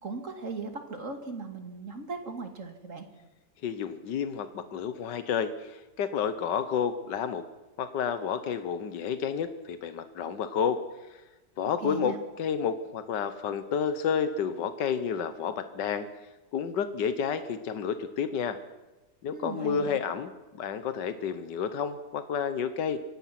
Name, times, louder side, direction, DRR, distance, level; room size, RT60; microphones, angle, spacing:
voice 1, 0.0-3.0 11.8-12.2 19.3-20.0, right 4 dB, 45° right, 6 dB, 2.7 m, -38 dB
voice 2, 3.6-7.4 7.8-10.8 11.1-11.2 11.6-16.1 16.5-18.6 19.2-23.0, left 7 dB, 85° left, 10 dB, 1.7 m, -30 dB
25.5 x 17.5 x 6.0 m, 1.1 s
omnidirectional pair, 1.8 m